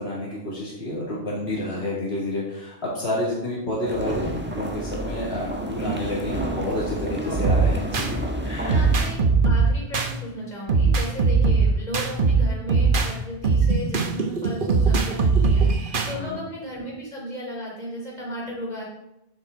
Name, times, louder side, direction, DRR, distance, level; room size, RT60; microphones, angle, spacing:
voice 1, 0.0-8.8 16.0-16.4, left 1 dB, 75° left, -7 dB, 2.9 m, -29 dB
sound 1, 3.9-9.1, right 1 dB, 10° right, 1.2 m, -31 dB
sound 2, 7.4-8.1 8.7-10.1 10.7-13.1 13.4-16.1, right 4 dB, 55° right, 1.1 m, -20 dB
voice 2, 8.6-9.2 9.4-18.8, equal, 40° left, -5 dB, 3.8 m, -35 dB
9.8 x 7.9 x 3.8 m, 0.84 s
omnidirectional pair, 1.1 m